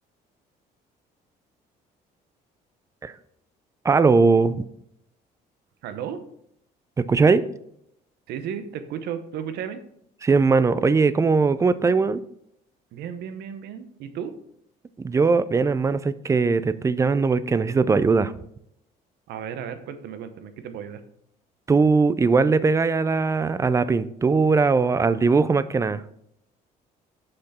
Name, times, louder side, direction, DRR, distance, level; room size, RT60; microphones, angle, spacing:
voice 1, 3.8-4.6 7.1-7.4 10.2-12.2 15.0-18.3 21.7-26.0, right 4 dB, 20° right, 15 dB, 0.4 m, -20 dB
voice 2, 5.8-6.2 8.3-9.8 12.9-14.3 19.3-21.0, right 8 dB, 75° right, 10 dB, 0.8 m, -34 dB
6.7 x 5.7 x 4.2 m, 0.73 s
cardioid pair, 110°, 17 cm